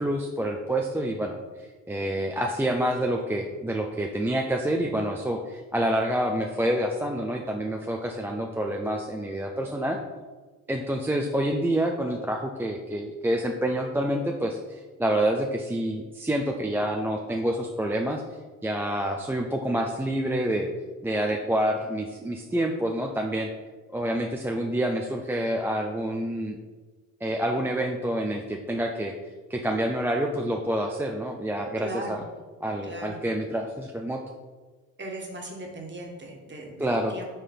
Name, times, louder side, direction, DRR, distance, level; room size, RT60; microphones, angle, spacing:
voice 1, 0.0-1.4 1.9-10.0 10.7-18.2 18.6-20.7 21.0-23.5 23.9-26.6 27.2-29.1 29.5-32.2 32.6-34.2 36.8-37.1, right 1 dB, 5° right, 2 dB, 0.4 m, -27 dB
voice 2, 31.8-32.2 32.8-33.2 35.0-36.9 37.1-37.3, right 2 dB, 25° right, 0 dB, 1.7 m, -38 dB
5.8 x 3.2 x 5.5 m, 1.4 s
hypercardioid pair, 65°, 40 cm